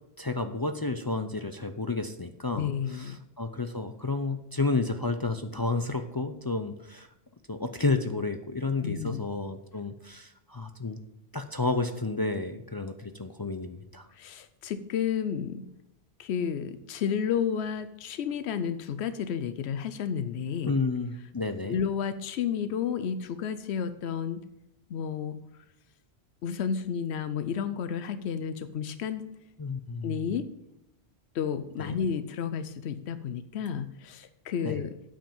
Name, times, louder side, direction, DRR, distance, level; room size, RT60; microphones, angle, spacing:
voice 1, 0.2-7.1 7.5-11.0 11.3-14.1 20.6-21.8 29.6-30.3 31.8-32.0 34.6-34.8, left 3 dB, 35° left, 7 dB, 0.4 m, -31 dB
voice 2, 2.6-3.2 8.8-9.2 14.2-15.6 16.2-20.7 21.7-24.4 24.9-25.4 26.4-29.3 30.0-30.5 31.3-34.9, left 7 dB, 85° left, 12 dB, 0.9 m, -31 dB
8.9 x 5.3 x 7.2 m, 0.86 s
omnidirectional pair, 1.1 m